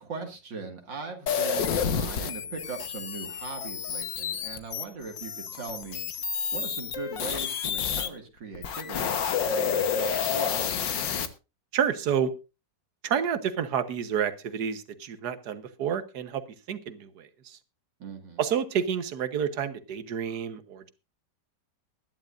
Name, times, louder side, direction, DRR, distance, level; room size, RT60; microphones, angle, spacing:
voice 1, 0.0-6.0 6.5-11.0 18.0-18.4, right 4 dB, 80° right, 3 dB, 2.8 m, -40 dB
sound 1, 1.3-8.1 8.5-11.3, left 7 dB, 85° left, 1.8 m, -29 dB
voice 2, 11.7-12.3 13.0-16.4 16.7-17.6 18.4-20.9, right 8 dB, 65° right, 10 dB, 1.7 m, -29 dB
21.0 x 11.0 x 2.6 m, 0.29 s
omnidirectional pair, 2.0 m